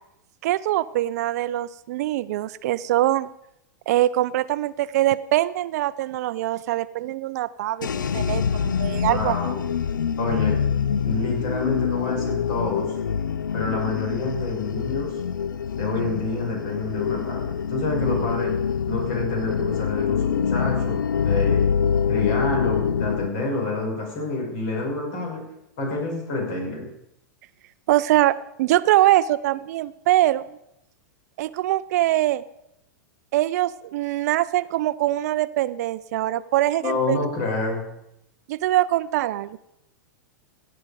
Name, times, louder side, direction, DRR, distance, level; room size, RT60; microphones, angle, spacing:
voice 1, 0.4-3.3 3.9-9.3 27.9-30.6 31.4-32.4 33.3-37.2 38.5-39.6, right 15 dB, 55° right, 17 dB, 0.5 m, -23 dB
sound 1, 7.8-23.3, left 7 dB, 80° left, 0.4 m, -25 dB
voice 2, 9.0-9.6 10.2-10.6 11.0-12.9 13.5-15.1 15.7-18.5 18.9-21.6 22.1-25.4 25.8-26.9 36.8-37.8, left 3 dB, 50° left, 0 dB, 5.6 m, -28 dB
16.0 x 8.8 x 5.0 m, 0.82 s
hypercardioid pair, 100°, 10 cm